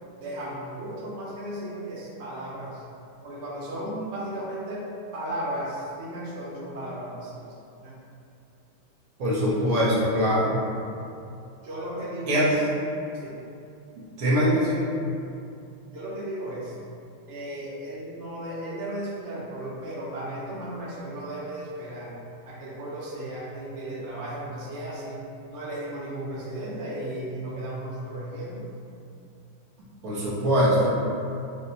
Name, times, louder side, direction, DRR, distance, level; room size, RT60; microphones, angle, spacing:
voice 1, 0.2-2.8 3.2-4.9 5.1-7.5 7.8-7.9 11.6-12.6 13.1-13.3 15.9-16.7 17.3-28.6, right 1 dB, 85° right, -7 dB, 0.5 m, -35 dB
voice 2, 9.2-10.6 12.3-12.5 14.2-14.8 30.0-30.9, equal, 60° right, -7 dB, 1.0 m, -22 dB
5.0 x 2.1 x 2.8 m, 2.6 s
omnidirectional pair, 2.2 m